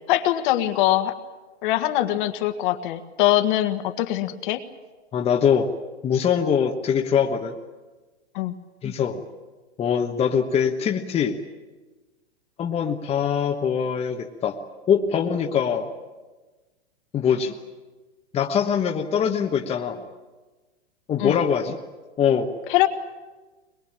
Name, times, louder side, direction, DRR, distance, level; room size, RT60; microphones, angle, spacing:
voice 1, 0.1-1.1 1.6-4.6 8.3-8.5 21.2-21.4 22.7-22.9, left 14 dB, 45° left, 7 dB, 1.7 m, -22 dB
voice 2, 5.1-5.7 6.0-7.5 8.8-9.2 9.8-11.4 12.6-14.6 14.9-15.9 17.1-17.5 18.3-20.0 21.1-21.8 22.2-22.5, left 7 dB, 20° left, 2 dB, 1.2 m, -23 dB
22.0 x 21.5 x 8.9 m, 1.2 s
hypercardioid pair, 135°, 34 cm